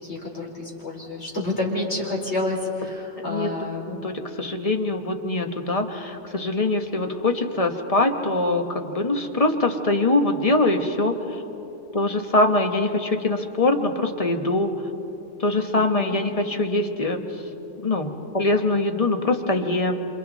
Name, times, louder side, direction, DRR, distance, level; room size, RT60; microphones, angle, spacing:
voice 1, 0.0-3.9 15.7-16.2, left 2 dB, 65° left, -3 dB, 4.6 m, -29 dB
voice 2, 3.2-3.5 3.9-11.4 11.9-14.7 15.4-17.2 17.8-19.9, left 2 dB, 30° left, 5 dB, 1.4 m, -23 dB
28.0 x 28.0 x 4.1 m, 2.9 s
omnidirectional pair, 1.2 m